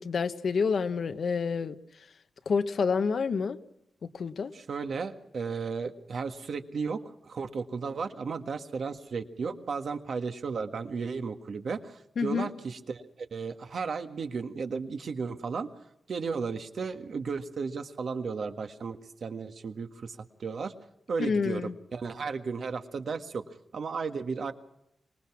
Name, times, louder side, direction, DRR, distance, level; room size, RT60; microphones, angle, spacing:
voice 1, 0.0-1.7 2.5-3.6 4.0-4.5 12.2-12.5 21.2-21.7, left 5 dB, 65° left, 10 dB, 1.2 m, -28 dB
voice 2, 4.5-15.7 16.1-20.7 21.1-23.4 23.7-24.5, right 5 dB, 60° right, 7 dB, 1.6 m, -34 dB
25.0 x 20.5 x 6.0 m, 0.80 s
wide cardioid pair, 125°, 0 cm